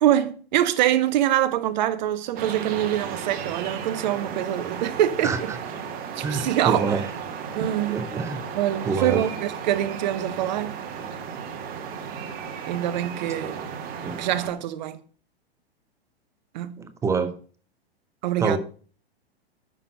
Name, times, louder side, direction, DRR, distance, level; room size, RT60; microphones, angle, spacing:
voice 1, 0.0-5.5 6.2-7.0 7.5-8.0 8.5-10.7 12.7-13.7 14.2-15.0 16.5-16.9 18.2-18.6, right 12 dB, 45° right, 0.8 m, -24 dB
sound 1, 2.4-14.5, right 7 dB, 30° right, 1.4 m, -34 dB
voice 2, 5.2-5.6 6.2-7.1 7.9-8.4 8.8-9.3 14.0-14.2 16.8-17.3 18.4-18.6, right 5 dB, 10° right, 0.5 m, -26 dB
9.0 x 6.3 x 5.3 m
figure-of-eight pair, 100°, 31 cm